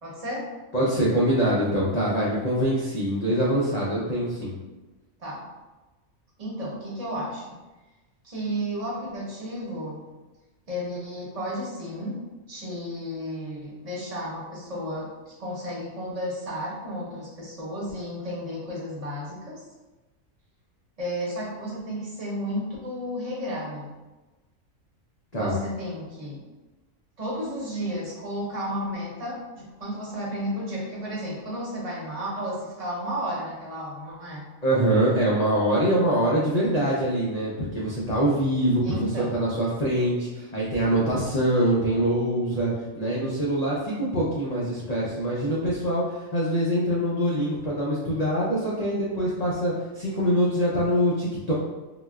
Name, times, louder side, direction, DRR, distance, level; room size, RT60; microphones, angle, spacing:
voice 1, 0.0-0.5 5.2-5.5 6.4-7.6 8.2-10.1 10.7-12.2 12.5-19.6 21.0-23.9 25.3-26.4 27.2-34.5 38.8-39.4, equal, 30° right, -6 dB, 0.8 m, -33 dB
voice 2, 0.7-4.6 25.3-25.6 34.6-51.5, right 1 dB, 85° left, -6 dB, 0.3 m, -24 dB
3.8 x 2.1 x 2.3 m, 1.2 s
omnidirectional pair, 1.5 m